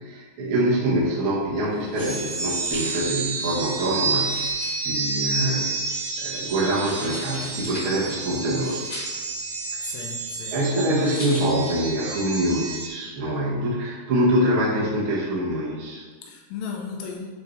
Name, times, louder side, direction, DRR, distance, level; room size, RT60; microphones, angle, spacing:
voice 1, 0.0-5.8 6.2-8.8 9.7-9.9 10.5-16.0, right 1 dB, 85° right, -6 dB, 1.1 m, -25 dB
sound 1, 1.4-12.1, left 1 dB, 35° left, 1.7 m, -41 dB
sound 2, 2.0-12.9, right 4 dB, 55° right, 1.7 m, -30 dB
voice 2, 9.8-10.6 16.2-17.3, left 5 dB, 85° left, 0 dB, 2.8 m, -35 dB
8.1 x 4.5 x 3.3 m, 1.4 s
omnidirectional pair, 4.9 m